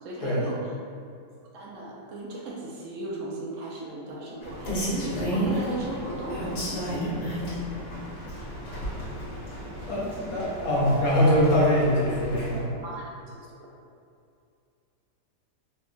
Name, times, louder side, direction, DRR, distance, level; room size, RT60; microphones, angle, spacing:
voice 1, 0.0-0.7 1.5-7.1 12.8-13.7, right 2 dB, 65° right, -4 dB, 0.8 m, -36 dB
Rain, 4.4-12.6, equal, 80° left, 1.7 m, -33 dB
voice 2, 9.9-12.7, equal, 60° left, -6 dB, 1.2 m, -23 dB
4.5 x 2.2 x 2.5 m, 2.4 s
omnidirectional pair, 1.8 m